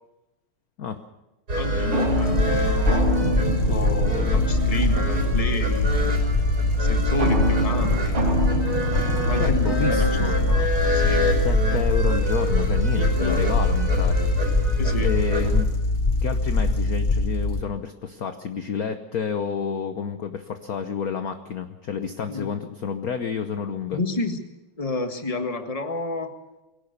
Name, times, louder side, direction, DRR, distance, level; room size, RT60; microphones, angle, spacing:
sound 1, 1.5-15.6, right 1 dB, 45° right, 4.2 m, -26 dB
voice 1, 1.6-3.4 3.7-6.2 6.8-8.4 9.3-10.1 10.4-11.3 12.9-13.4 14.8-15.1 22.3-22.5 23.9-24.4 24.8-26.3, left 3 dB, 20° left, 6 dB, 1.5 m, -31 dB
sound 2, 1.9-5.6 7.2-10.8, right 1 dB, 90° right, 5.0 m, -28 dB
sound 3, 2.1-17.6, left 3 dB, 70° left, 0.4 m, -24 dB
voice 2, 9.4-10.3 11.4-14.4 15.0-15.7 16.2-24.0, left 7 dB, 50° left, 8 dB, 1.2 m, -30 dB
22.5 x 17.5 x 6.7 m, 0.98 s
omnidirectional pair, 2.4 m